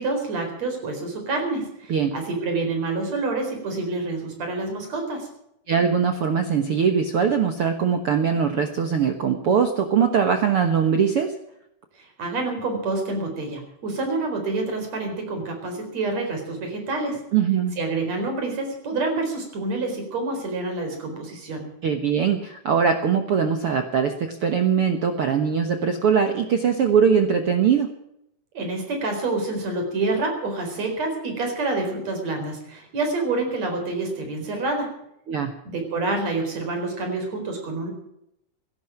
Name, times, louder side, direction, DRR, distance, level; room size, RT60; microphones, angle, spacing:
voice 1, 0.0-5.3 12.0-17.2 17.8-21.7 28.5-35.0 35.7-37.9, right 3 dB, 45° right, 4 dB, 5.4 m, -27 dB
voice 2, 5.7-11.3 17.3-17.7 21.8-27.9 35.3-35.5, right 7 dB, 65° right, 6 dB, 1.4 m, -21 dB
17.0 x 12.5 x 5.9 m, 0.78 s
omnidirectional pair, 4.3 m